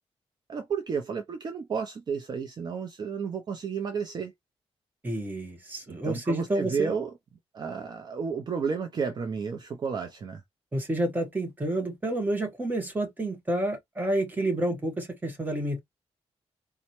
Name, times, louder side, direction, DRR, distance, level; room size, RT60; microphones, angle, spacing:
voice 1, 0.5-4.3 5.9-7.1 7.5-10.4, right 6 dB, 40° right, 0.5 m, -32 dB
voice 2, 5.0-6.9 10.7-15.8, right 1 dB, 15° right, 1.2 m, -29 dB
4.2 x 2.1 x 3.0 m
wide cardioid pair, 135°, 11 cm